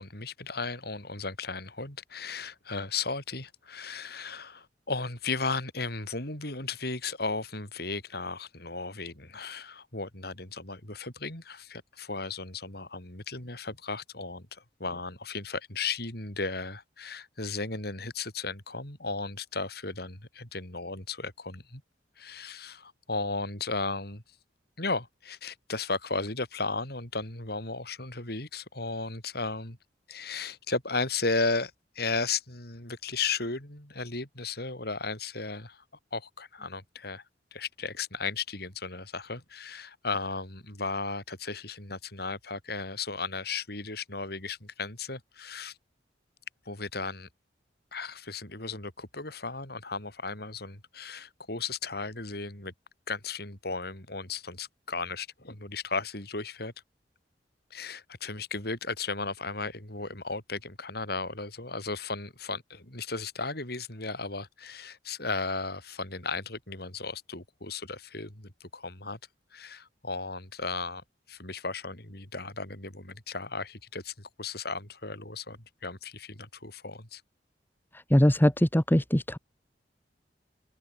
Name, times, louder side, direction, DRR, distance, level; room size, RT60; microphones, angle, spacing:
voice 1, 0.0-21.8 22.2-24.2 24.8-29.8 30.1-35.8 36.1-37.2 37.5-45.8 46.7-47.3 47.9-52.7 53.1-56.7 57.7-69.2 69.5-77.2, left 4 dB, 60° left, 7.7 m, -35 dB
voice 2, 78.1-79.4, equal, 10° left, 1.3 m, -22 dB
open air
head